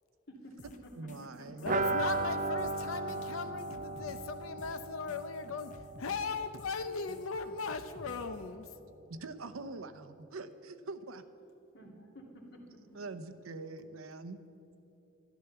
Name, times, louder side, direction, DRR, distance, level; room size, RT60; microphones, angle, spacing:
voice 1, 0.3-1.7 2.1-2.3 11.7-13.0, equal, 55° left, 1 dB, 2.3 m, -52 dB
sound 1, 0.6-8.4, left 2 dB, 35° left, 0.7 m, -53 dB
voice 2, 1.0-1.7 9.1-11.2 12.9-14.4, right 3 dB, 85° right, 10 dB, 0.8 m, -44 dB
voice 3, 1.6-8.7, left 5 dB, 80° left, 10 dB, 0.7 m, -38 dB
sound 2, 1.7-7.3 7.5-7.6 7.9-8.0, right 2 dB, 40° right, 0.6 m, -36 dB
12.5 x 12.0 x 6.9 m, 2.9 s
head